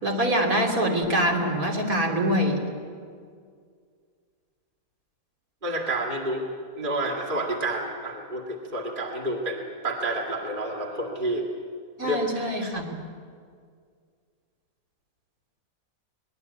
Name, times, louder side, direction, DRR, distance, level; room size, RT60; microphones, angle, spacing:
voice 1, 0.0-2.6 12.0-12.9, equal, 65° right, 1 dB, 3.6 m, -24 dB
voice 2, 5.6-6.5 6.8-11.5 12.0-12.2, right 1 dB, 35° right, 0 dB, 2.4 m, -29 dB
24.0 x 20.0 x 8.3 m, 2.1 s
omnidirectional pair, 1.6 m